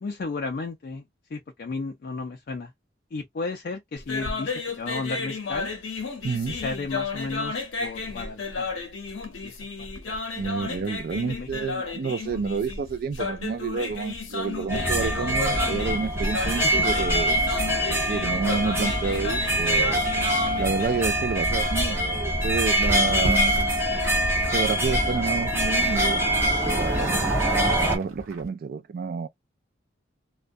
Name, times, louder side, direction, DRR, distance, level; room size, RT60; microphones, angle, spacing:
voice 1, 0.0-1.0 1.3-2.7 3.1-5.7 6.5-8.7 9.4-10.2 11.3-11.5 16.5-16.7 24.0-24.2, left 3 dB, 50° left, 0.3 m, -34 dB
sound 1, 4.0-20.9, left 3 dB, 75° left, 0.7 m, -33 dB
voice 2, 6.2-6.6 10.4-17.4 17.9-20.0 20.6-23.5 24.5-27.3 27.9-29.3, right 5 dB, 50° right, 0.3 m, -29 dB
sound 2, 14.7-28.0, right 1 dB, 10° right, 0.8 m, -24 dB
sound 3, 22.3-22.5 22.8-25.4 26.0-28.5, right 1 dB, 80° right, 0.8 m, -34 dB
2.3 x 2.1 x 2.5 m
head